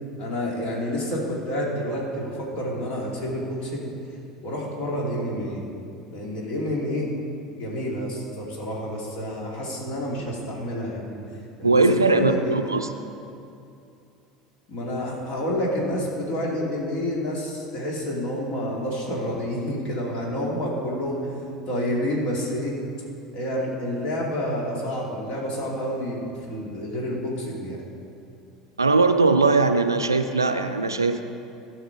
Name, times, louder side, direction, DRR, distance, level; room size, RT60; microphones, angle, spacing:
voice 1, 0.2-3.9 4.4-5.6 6.1-7.1 7.6-11.2 11.6-12.7 14.7-21.3 21.7-22.8 23.3-27.8, equal, 50° left, -3 dB, 2.8 m, -29 dB
voice 2, 11.6-12.9 28.8-31.2, right 3 dB, 85° right, 8 dB, 0.4 m, -20 dB
16.0 x 6.0 x 4.7 m, 2.6 s
figure-of-eight pair, 70°, 2 cm